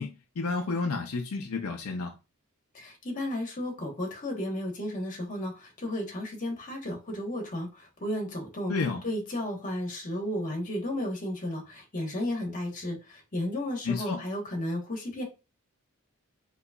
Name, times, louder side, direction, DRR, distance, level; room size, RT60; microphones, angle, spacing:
voice 1, 0.0-2.1 8.7-9.0 13.8-14.2, left 4 dB, 75° left, 0.5 m, -31 dB
voice 2, 2.7-8.7 9.0-15.2, left 1 dB, 35° left, 1.1 m, -33 dB
3.8 x 3.0 x 2.3 m
head